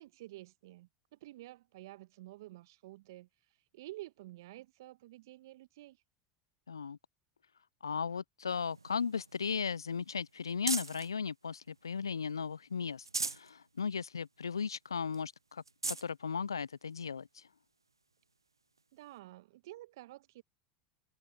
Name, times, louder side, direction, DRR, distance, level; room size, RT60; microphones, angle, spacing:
voice 1, 0.0-3.3 3.7-6.0 18.9-20.4, right 17 dB, 65° right, 1.6 m, -50 dB
voice 2, 6.7-7.0 7.8-15.6 16.0-17.5, left 6 dB, 85° left, 0.3 m, -36 dB
sound 1, 8.5-11.1 11.7-12.4 12.8-13.5 14.0-14.1 14.4-14.5 15.1-15.2 15.6-16.1 16.9-17.0 18.8-18.9, right 3 dB, 90° right, 0.7 m, -40 dB
figure-of-eight pair, 80°, 2 cm